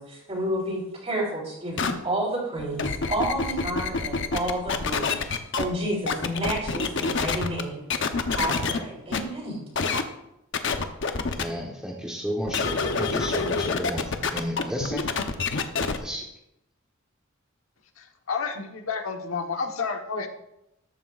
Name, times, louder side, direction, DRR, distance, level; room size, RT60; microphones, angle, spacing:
voice 1, 0.0-7.8 8.3-9.7, right 1 dB, 35° right, -6 dB, 3.9 m, -30 dB
sound 1, 1.8-1.9 2.6-5.6 6.1-7.6 7.9-8.8 9.1-9.2 9.7-10.0 10.5-11.4 12.5-16.0, left 4 dB, 60° left, 0.9 m, -27 dB
voice 2, 11.2-15.1 15.8-16.3, equal, 5° right, -3 dB, 1.1 m, -33 dB
voice 3, 18.0-20.3, left 5 dB, 85° left, 4 dB, 1.2 m, -30 dB
14.0 x 11.5 x 2.5 m, 0.85 s
head